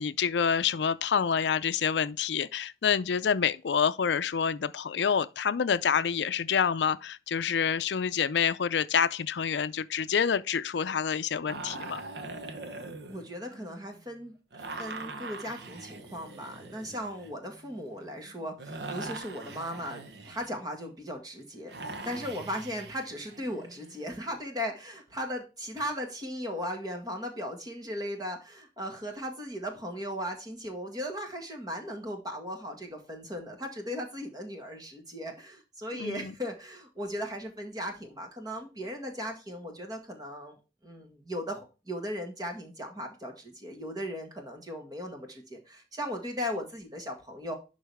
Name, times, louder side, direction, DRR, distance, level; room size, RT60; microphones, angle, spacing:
voice 1, 0.0-12.0 36.0-36.3, left 7 dB, 80° left, 0.4 m, -27 dB
sound 1, 11.5-14.0 14.5-20.7 21.7-24.4 25.8-25.9, right 3 dB, 70° right, 1.1 m, -43 dB
voice 2, 13.1-14.3 14.8-21.7 22.0-47.5, equal, 20° right, 1.8 m, -37 dB
11.0 x 4.0 x 3.5 m
head